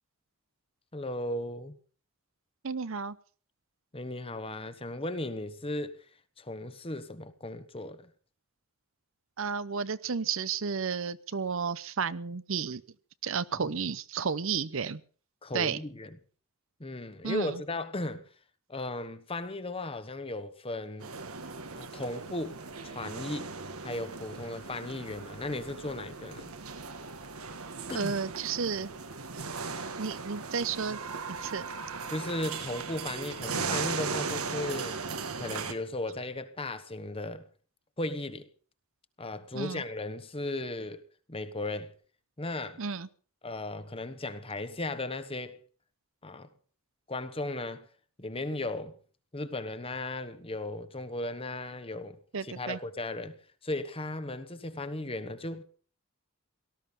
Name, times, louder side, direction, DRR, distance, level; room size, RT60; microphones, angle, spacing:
voice 1, 0.9-1.8 3.9-6.0 6.4-8.1 13.6-13.7 15.4-16.1 16.8-18.2 18.7-21.1 21.7-22.6 22.8-23.5 23.8-26.5 27.9-28.1 32.1-35.0 35.4-37.5 38.0-38.5 39.2-41.0 41.3-41.9 42.4-42.8 43.4-45.6 46.2-46.5 47.1-47.9 48.2-48.9 49.3-55.6, left 2 dB, 25° left, 1.2 m, -36 dB
voice 2, 2.6-3.2 9.4-12.8 13.2-15.0 15.5-15.8 17.2-17.6 27.9-28.9 29.3-29.4 30.0-31.0 31.3-31.7 39.5-39.8 42.8-43.1 52.3-52.8, right 5 dB, 65° right, 0.7 m, -32 dB
sound 1, 21.0-35.7, right 4 dB, 85° right, 1.7 m, -38 dB
18.0 x 13.0 x 5.5 m
head